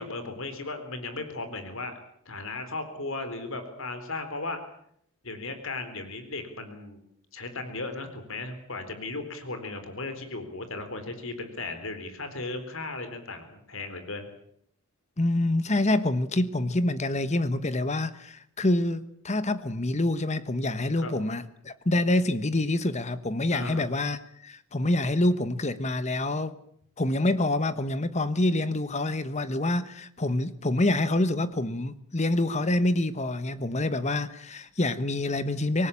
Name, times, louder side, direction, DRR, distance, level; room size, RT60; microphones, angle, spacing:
voice 1, 0.0-1.9 2.3-4.6 5.2-7.0 7.3-14.3 21.0-21.1 23.5-23.8, left 3 dB, 65° left, 9 dB, 4.0 m, -36 dB
voice 2, 15.2-26.5 27.0-35.9, left 1 dB, 30° left, 13 dB, 1.2 m, -26 dB
25.5 x 19.0 x 8.7 m, 0.70 s
head